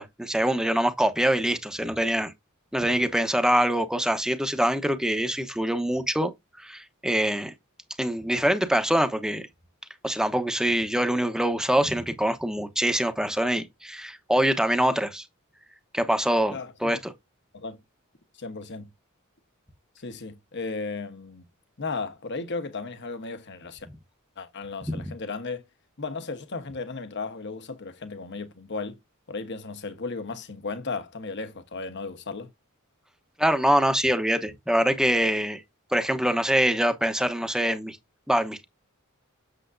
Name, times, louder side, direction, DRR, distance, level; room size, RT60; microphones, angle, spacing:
voice 1, 0.0-2.3 2.7-6.3 6.6-7.5 8.0-9.4 10.0-15.2 15.9-17.1 24.9-25.0 33.4-35.6 35.9-38.0 38.3-38.6, right 1 dB, 5° right, 0.9 m, -24 dB
voice 2, 16.5-17.0 17.5-17.8 18.4-18.9 20.0-21.4 21.8-23.9 24.4-25.6 26.0-29.0 29.3-32.5, left 4 dB, 55° left, 1.2 m, -35 dB
7.9 x 7.3 x 2.6 m
head